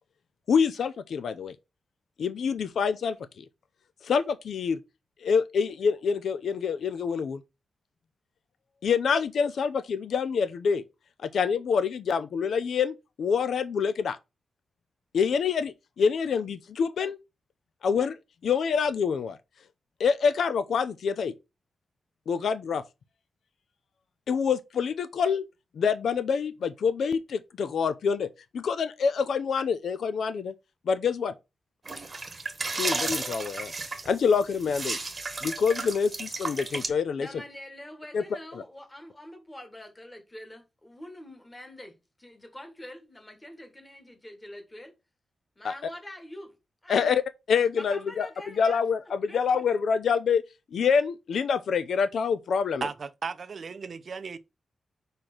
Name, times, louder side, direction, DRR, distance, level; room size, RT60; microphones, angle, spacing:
voice 1, 0.5-1.5 2.2-3.5 4.0-4.8 5.2-7.4 8.8-10.8 11.2-14.2 15.1-17.2 17.8-18.2 18.4-19.4 20.0-21.3 22.3-22.8 24.3-25.4 25.8-28.3 28.5-30.5 30.9-31.3 32.7-33.7 34.0-35.0 35.4-37.3 38.1-38.2 45.6-45.7 46.9-47.2 47.5-48.3 48.6-50.4 50.7-52.8, left 6 dB, 70° left, 0.6 m, -26 dB
sound 1, 31.9-36.9, right 3 dB, 25° right, 1.1 m, -33 dB
voice 2, 37.2-44.9 45.6-46.6 46.8-47.1 47.8-48.8 49.3-49.6, left 1 dB, 15° left, 1.6 m, -45 dB
voice 3, 52.8-54.4, right 5 dB, 45° right, 0.6 m, -35 dB
5.0 x 4.4 x 6.0 m
wide cardioid pair, 175°, 0 cm